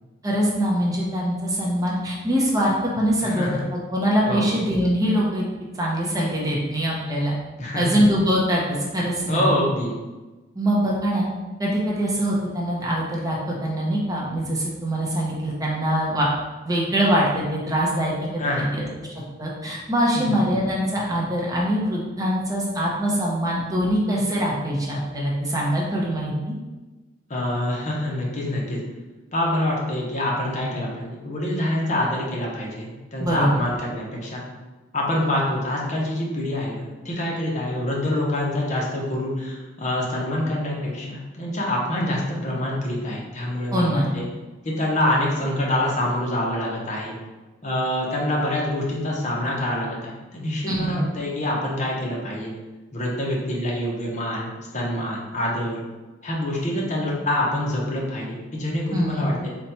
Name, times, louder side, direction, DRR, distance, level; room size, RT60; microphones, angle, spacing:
voice 1, 0.2-5.4 5.8-7.3 7.7-9.5 10.5-11.2 11.6-16.3 16.6-18.9 19.4-26.5 33.2-33.5 43.7-44.1 50.7-51.0 58.9-59.3, equal, 20° right, -4 dB, 0.6 m, -23 dB
voice 2, 3.2-3.6 4.3-4.5 7.6-7.9 9.3-10.0 18.4-18.7 20.2-20.3 27.3-28.8 29.3-34.4 34.9-44.2 44.6-47.2 47.6-52.5 52.9-55.8 56.2-59.5, left 1 dB, 40° left, -3 dB, 0.8 m, -26 dB
4.0 x 2.2 x 4.2 m, 1.2 s
head